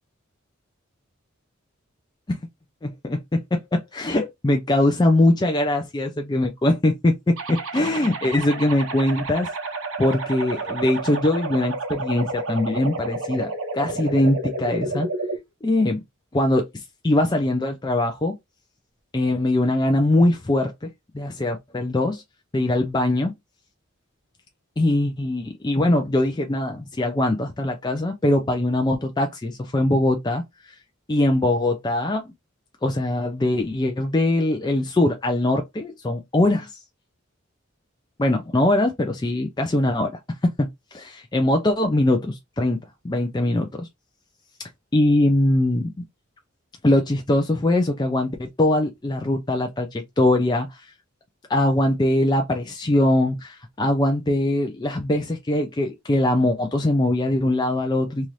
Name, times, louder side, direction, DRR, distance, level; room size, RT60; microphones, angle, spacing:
voice 1, 2.8-9.5 10.0-15.1 15.6-16.0 16.3-18.3 19.1-22.2 22.5-23.3 24.8-30.4 31.1-32.3 32.8-36.7 38.2-40.2 40.6-42.8 43.0-43.9 44.6-46.0 46.8-50.8 51.5-58.3, left 1 dB, 20° left, 0.4 m, -22 dB
sound 1, 7.4-15.4, right 2 dB, 80° right, 0.8 m, -30 dB
2.8 x 2.5 x 3.1 m
head